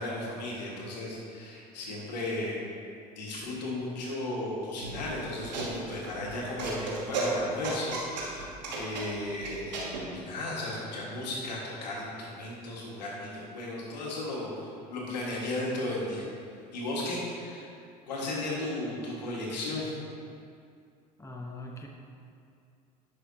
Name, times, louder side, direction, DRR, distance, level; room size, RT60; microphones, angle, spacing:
voice 1, 0.0-2.6 3.1-16.2 16.7-17.7 18.1-19.9, left 1 dB, 85° left, -4 dB, 1.7 m, -35 dB
sound 1, 4.8-10.0, right 3 dB, 85° right, 1.3 m, -34 dB
voice 2, 21.2-21.9, left 2 dB, 15° left, 1 dB, 1.0 m, -41 dB
10.5 x 5.9 x 2.8 m, 2.4 s
hypercardioid pair, 70°, 21 cm